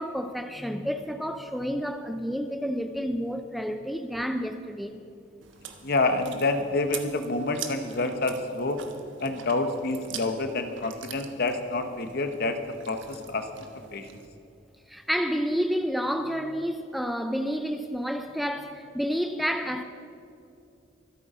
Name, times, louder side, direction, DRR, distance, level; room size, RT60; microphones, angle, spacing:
voice 1, 0.0-5.0 14.9-19.8, equal, ahead, 0.5 m, -30 dB
Chewing mastication, 5.4-14.3, right 8 dB, 80° right, 1.3 m, -44 dB
voice 2, 5.8-8.8 9.2-12.6 12.9-13.5 13.9-14.2, left 2 dB, 55° left, 1.1 m, -28 dB
24.5 x 8.6 x 5.1 m
head